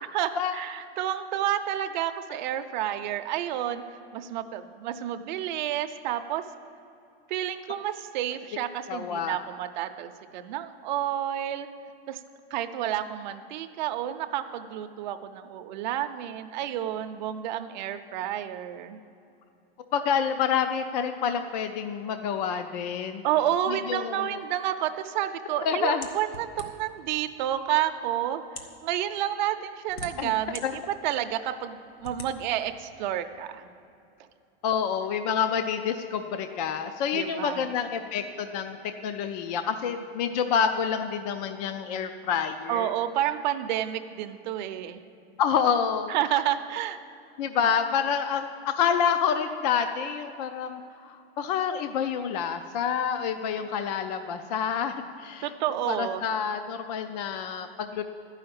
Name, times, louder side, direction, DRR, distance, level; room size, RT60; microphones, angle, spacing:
voice 1, 0.0-3.8 4.1-6.4 7.3-11.7 12.1-12.2 12.5-19.0 23.2-33.7 37.1-37.7 42.7-45.0 46.1-47.0 55.4-56.2, right 11 dB, 50° right, 8 dB, 0.6 m, -30 dB
voice 2, 8.9-9.4 19.9-23.2 23.7-24.4 25.6-26.1 30.2-30.3 30.6-30.7 34.6-38.8 39.0-42.9 45.4-46.1 47.4-55.5 55.9-58.0, left 7 dB, 45° left, 8 dB, 0.5 m, -28 dB
sound 1, 26.0-27.0 27.8-27.9 28.4-28.8 29.6-30.6 31.2-31.3 32.0-32.3, left 3 dB, 75° left, 1.3 m, -41 dB
12.0 x 5.7 x 8.7 m, 2.6 s
supercardioid pair, 170°, 30 cm